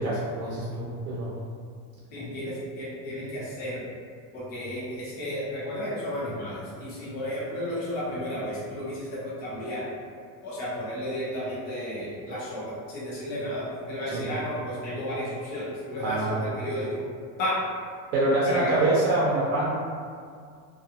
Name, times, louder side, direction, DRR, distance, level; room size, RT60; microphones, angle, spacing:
voice 1, 0.0-1.3 2.2-2.3 14.1-14.2 16.0-16.4 18.1-19.7, right 2 dB, 75° right, -6 dB, 0.6 m, -25 dB
voice 2, 2.1-3.9 4.3-9.9 10.4-17.0 17.4-17.6 18.4-19.0, equal, 25° left, -9 dB, 0.4 m, -33 dB
2.3 x 2.3 x 2.7 m, 2.1 s
cardioid pair, 170°, 44 cm